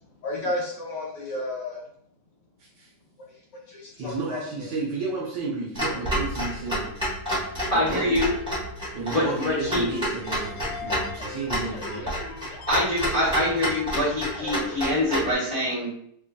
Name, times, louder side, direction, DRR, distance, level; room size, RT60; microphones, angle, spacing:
voice 1, 0.2-1.8 3.7-4.7, left 2 dB, 65° left, -3 dB, 1.3 m, -32 dB
voice 2, 2.6-2.9 4.0-6.9 7.7-8.2 8.9-12.1, right 3 dB, 65° right, -4 dB, 1.2 m, -32 dB
Clock, 5.7-15.3, equal, 5° right, 0.6 m, -30 dB
voice 3, 7.7-8.3 9.1-9.8 12.7-15.9, left 1 dB, 45° left, -8 dB, 0.4 m, -24 dB
sound 1, 9.9-15.0, left 5 dB, 90° left, 1.6 m, -40 dB
5.2 x 2.5 x 2.2 m, 0.67 s
omnidirectional pair, 2.4 m